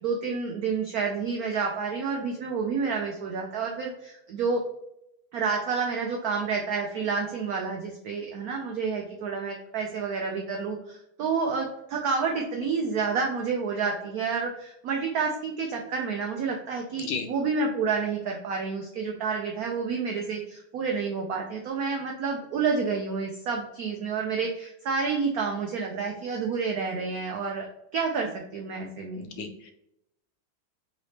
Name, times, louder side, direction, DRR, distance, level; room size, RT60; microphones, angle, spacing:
voice 1, 0.0-4.6 5.3-27.7 27.9-29.5, right 5 dB, 85° right, 1 dB, 0.8 m, -29 dB
voice 2, 29.1-29.7, left 5 dB, 75° left, 5 dB, 1.4 m, -34 dB
3.9 x 3.3 x 4.1 m, 0.81 s
omnidirectional pair, 2.3 m